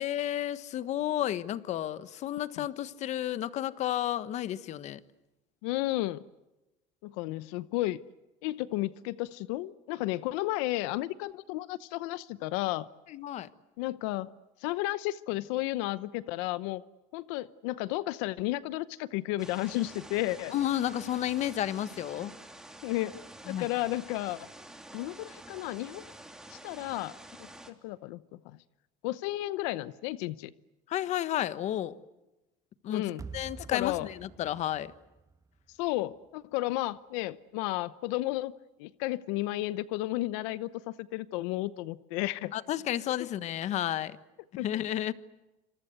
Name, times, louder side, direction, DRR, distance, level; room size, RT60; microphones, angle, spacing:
voice 1, 0.0-5.0 13.1-13.5 20.5-22.3 23.5-23.7 30.9-32.0 32.8-33.1 33.3-34.9 42.5-44.2 44.6-45.1, left 12 dB, 50° left, 1.3 m, -32 dB
voice 2, 5.6-6.2 7.0-8.0 8.4-12.9 13.8-14.3 14.6-16.8 17.1-20.5 22.8-23.2 23.5-24.5 24.9-26.0 26.5-28.6 29.0-30.5 32.9-33.2 33.7-34.1 35.8-38.5 38.8-42.5 44.6-44.7, left 17 dB, 90° left, 0.9 m, -33 dB
sound 1, 19.4-27.7, right 1 dB, 5° right, 3.3 m, -49 dB
sound 2, 33.2-36.3, right 5 dB, 20° right, 1.5 m, -48 dB
28.5 x 26.5 x 8.0 m
cardioid pair, 135°, 15 cm